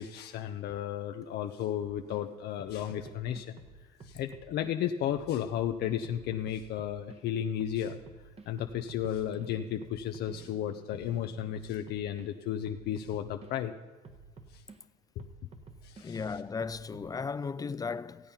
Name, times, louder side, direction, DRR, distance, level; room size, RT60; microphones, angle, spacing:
voice 1, 0.0-3.6 4.0-8.0 8.5-13.7 14.5-14.6 15.8-16.2, left 10 dB, 75° left, 0.7 m, -34 dB
sound 1, 1.8-2.2 2.6-4.7 5.1-7.2 7.6-12.3 12.7-13.5 14.0-14.8 15.2-17.1, right 4 dB, 35° right, 1.2 m, -51 dB
voice 2, 16.0-18.3, left 5 dB, 20° left, 0.4 m, -36 dB
15.5 x 8.8 x 5.6 m
cardioid pair, 110°, 17 cm